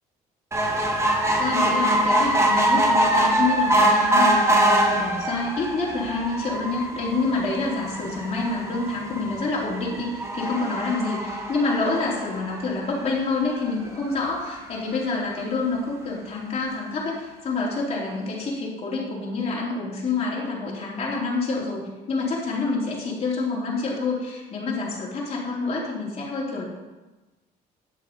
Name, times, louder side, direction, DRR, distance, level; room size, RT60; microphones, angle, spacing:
sound 1, 0.5-13.1 13.7-13.8 14.1-14.2 14.4-14.5, right 1 dB, 15° right, 1.4 m, -23 dB
voice 1, 1.3-21.8 22.1-26.6, left 3 dB, 40° left, -5 dB, 3.4 m, -27 dB
9.8 x 6.5 x 5.3 m, 1.2 s
cardioid pair, 110°, 17 cm